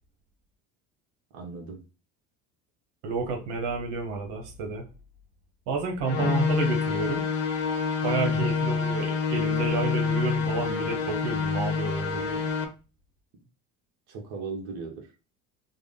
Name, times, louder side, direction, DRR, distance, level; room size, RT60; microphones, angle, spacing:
voice 1, 1.3-1.8 6.2-6.4 8.2-8.5 14.1-15.1, right 4 dB, 55° right, 1 dB, 1.1 m, -37 dB
voice 2, 3.0-4.8 5.7-7.3 8.0-12.4, right 4 dB, 85° right, 1 dB, 1.0 m, -30 dB
sound 1, 6.0-12.6, left 5 dB, 70° left, 0.8 m, -27 dB
3.5 x 2.1 x 3.5 m, 0.32 s
cardioid pair, 130°, 33 cm